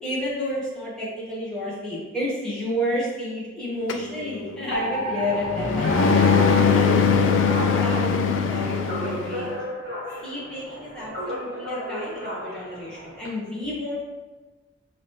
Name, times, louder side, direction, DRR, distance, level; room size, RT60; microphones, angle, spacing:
voice 1, 0.0-7.2 7.8-9.5 10.2-14.0, equal, 5° left, -9 dB, 1.2 m, -31 dB
sound 1, 3.9-9.5, left 5 dB, 75° left, 0.4 m, -22 dB
Alarm, 4.7-13.3, equal, 55° right, 1.3 m, -32 dB
5.8 x 3.0 x 3.1 m, 1.3 s
head